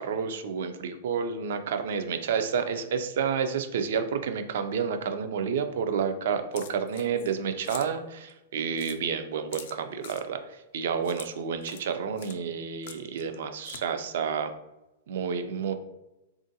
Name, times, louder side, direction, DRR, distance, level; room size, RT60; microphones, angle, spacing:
voice 1, 0.0-14.5 15.1-15.7, right 6 dB, 60° right, 8 dB, 0.4 m, -30 dB
sound 1, 6.5-7.3 7.6-7.9 8.3-8.4 8.8-9.0 9.5-10.2 11.0-11.3 11.6-11.9 12.2-12.4 12.8-13.3 13.6-13.8, left 9 dB, 55° left, 0.3 m, -44 dB
3.6 x 2.4 x 2.7 m, 0.95 s
hypercardioid pair, 160°, 0 cm